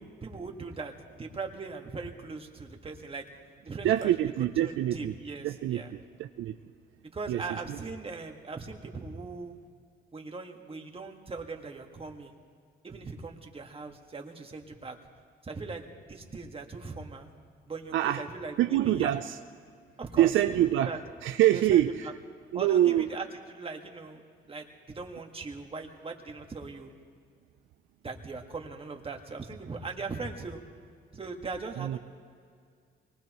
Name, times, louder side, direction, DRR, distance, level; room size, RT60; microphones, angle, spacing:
voice 1, 0.0-3.3 3.6-4.1 4.6-5.9 7.1-9.6 10.1-12.4 12.8-15.0 15.4-17.3 17.7-19.1 20.0-20.3 20.7-21.0 21.5-22.1 22.5-24.2 24.5-26.9 28.0-30.6 31.1-32.0, right 4 dB, 30° right, 2 dB, 1.8 m, -40 dB
voice 2, 3.8-5.1 5.4-6.5 7.3-7.8 17.9-18.2 18.6-19.4 20.2-20.9 21.2-22.1 22.5-23.1 31.8-32.0, right 12 dB, 80° right, 7 dB, 0.5 m, -25 dB
24.0 x 19.5 x 3.1 m, 2.1 s
cardioid pair, 90°, 20 cm